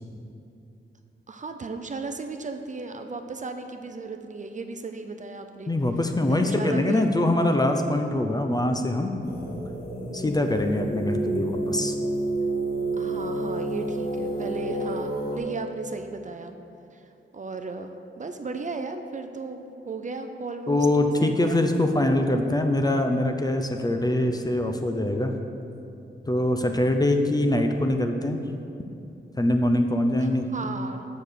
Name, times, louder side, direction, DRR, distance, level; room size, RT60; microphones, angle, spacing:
voice 1, 1.3-5.7 6.2-7.1 13.0-16.6 16.9-17.1 17.3-20.9 21.2-21.6 30.2-31.1, right 4 dB, 40° right, 6 dB, 0.5 m, -35 dB
voice 2, 5.7-9.1 10.1-11.9 20.7-25.3 26.2-28.4 29.4-30.5, left 1 dB, 20° left, 5 dB, 0.5 m, -23 dB
sound 1, 9.2-15.4, right 2 dB, 50° left, 2.0 m, -29 dB
7.8 x 6.3 x 6.7 m, 2.7 s
wide cardioid pair, 165°, 20 cm